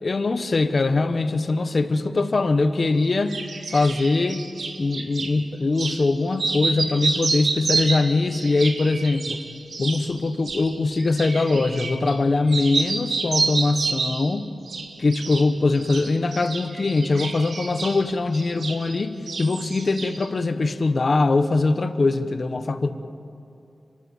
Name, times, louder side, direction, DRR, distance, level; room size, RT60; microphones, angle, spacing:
voice 1, 0.0-3.4 3.7-4.5 4.8-9.4 9.8-14.5 15.0-22.9, left 3 dB, 45° left, 10 dB, 1.1 m, -22 dB
sound 1, 3.0-5.3 5.7-6.0 6.3-12.2 12.5-14.3 14.7-15.5 15.7-19.0 19.3-20.3, right 4 dB, 70° right, 1.9 m, -29 dB
29.0 x 12.5 x 8.0 m, 2.7 s
wide cardioid pair, 135°, 0 cm